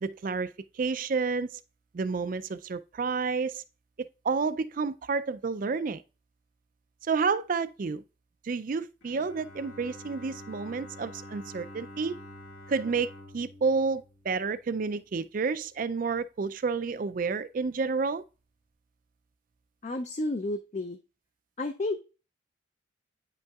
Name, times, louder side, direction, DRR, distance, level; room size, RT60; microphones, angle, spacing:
voice 1, 0.0-1.6 1.9-3.6 4.0-6.0 7.0-8.0 8.4-12.2 12.7-18.2, right 4 dB, 40° right, 0.3 m, -30 dB
Bowed string instrument, 9.0-14.9, left 1 dB, 80° left, 2.1 m, -47 dB
voice 2, 19.8-21.0 21.6-22.0, left 2 dB, 35° left, 0.4 m, -31 dB
9.1 x 5.4 x 2.3 m
head